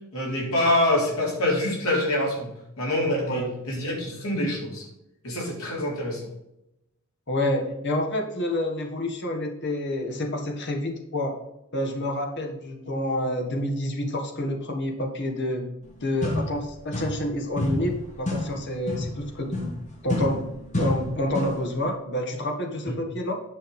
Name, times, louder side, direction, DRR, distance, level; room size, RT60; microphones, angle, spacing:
voice 1, 0.1-4.9 5.2-6.3 22.9-23.0, left 1 dB, 85° left, -2 dB, 4.1 m, -26 dB
voice 2, 7.3-11.4 11.7-15.7 16.0-19.8 20.0-23.4, left 1 dB, 55° left, 3 dB, 1.8 m, -28 dB
sound 1, 15.8-15.9 16.2-17.3 17.6-21.7, left 1 dB, 35° left, 2.0 m, -30 dB
10.0 x 5.8 x 5.4 m, 0.86 s
head